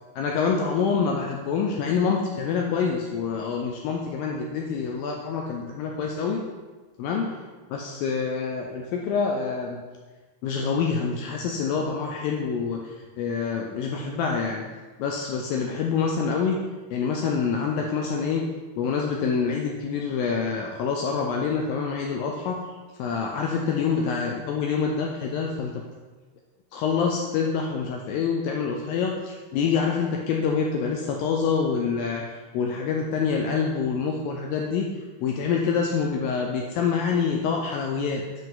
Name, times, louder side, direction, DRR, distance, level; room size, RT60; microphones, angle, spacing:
voice 1, 0.2-6.4 7.0-7.3 7.7-9.8 10.4-14.6 15.0-16.6 16.9-18.4 18.8-22.6 23.0-25.8 26.7-34.9 35.2-38.2, left 5 dB, 85° left, 1 dB, 2.0 m, -26 dB
7.6 x 5.4 x 3.8 m, 1.4 s
omnidirectional pair, 4.6 m